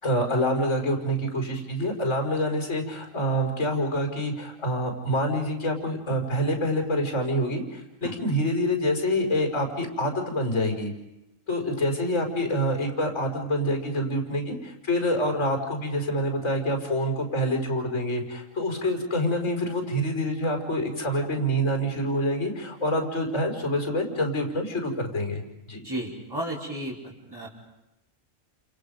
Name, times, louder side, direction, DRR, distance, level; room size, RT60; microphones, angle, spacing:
voice 1, 0.0-10.9 11.5-25.4 25.7-25.8, equal, 75° left, 2 dB, 5.7 m, -26 dB
voice 2, 25.8-27.0 27.3-27.5, right 1 dB, 15° right, -4 dB, 5.0 m, -33 dB
29.5 x 28.5 x 5.3 m, 0.93 s
omnidirectional pair, 1.3 m